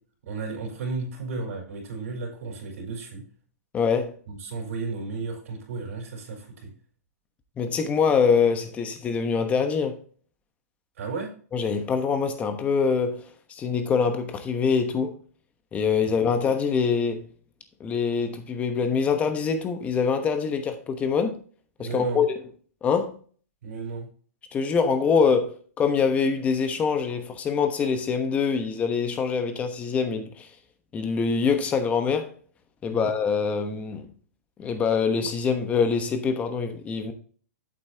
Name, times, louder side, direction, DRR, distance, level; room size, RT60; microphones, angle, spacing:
voice 1, 0.2-3.2 4.3-6.7 11.0-11.3 16.0-16.4 21.8-22.2 23.6-24.1 32.8-33.1, right 4 dB, 65° right, 4.5 m, -34 dB
voice 2, 3.7-4.1 7.6-10.0 11.5-15.2 15.7-17.3 17.8-21.4 21.8-22.3 22.8-23.2 24.5-30.5 30.9-32.3 32.8-34.1 34.6-37.1, left 5 dB, 15° left, 1.1 m, -24 dB
8.4 x 8.0 x 2.9 m
hypercardioid pair, 150°, 9 cm